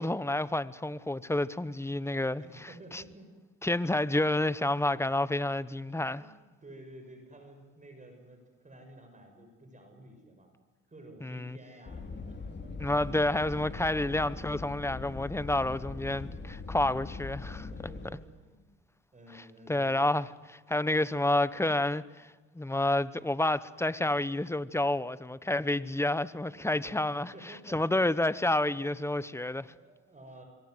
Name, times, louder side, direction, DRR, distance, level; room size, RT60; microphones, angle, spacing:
voice 1, 0.0-2.4 2.9-3.0 3.6-6.2 11.2-11.6 12.8-17.7 19.7-22.3 22.5-27.3 27.7-29.7, left 1 dB, 10° left, 0.9 m, -29 dB
voice 2, 2.4-3.3 6.2-10.5 10.9-12.7 17.7-18.7 19.1-20.2 26.9-27.0 27.3-28.1 28.6-28.8 29.6-30.4, right 1 dB, 25° right, 6.3 m, -52 dB
sound 1, 11.9-18.1, left 4 dB, 35° left, 3.3 m, -41 dB
26.0 x 23.0 x 7.9 m
cardioid pair, 90°, 30 cm